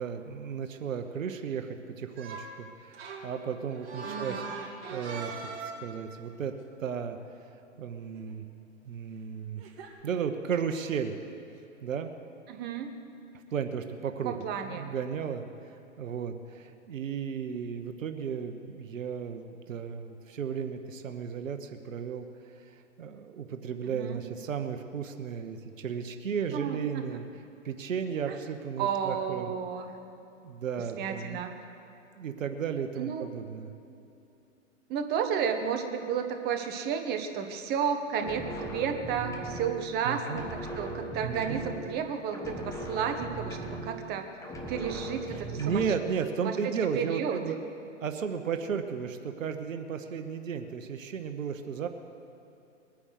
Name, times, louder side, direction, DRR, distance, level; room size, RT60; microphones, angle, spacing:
voice 1, 0.0-5.3 5.6-6.5 6.8-7.2 7.8-8.4 8.8-9.6 10.0-11.1 11.8-12.1 13.5-14.4 14.6-15.5 16.0-27.2 27.6-29.5 30.4-31.4 32.1-33.7 40.0-40.4 41.2-41.6 45.6-47.6 48.0-51.9, right 7 dB, 80° right, 7 dB, 1.1 m, -34 dB
sound 1, 2.2-2.5 2.9-6.0 8.1-8.3 9.6-9.9, right 4 dB, 50° right, 3.2 m, -40 dB
voice 2, 4.0-4.5 12.5-12.9 14.2-14.8 23.9-24.2 26.5-27.2 28.3-28.4 28.8-29.9 31.0-31.5 33.0-33.3 34.9-44.3 44.7-45.8 46.4-47.4, right 7 dB, 25° right, 6 dB, 1.3 m, -32 dB
sound 2, 38.1-40.0 40.2-42.1 42.3-44.2 44.4-46.1, right 1 dB, 10° left, 1.4 m, -39 dB
21.5 x 9.7 x 6.5 m, 2.8 s
hypercardioid pair, 135°, 38 cm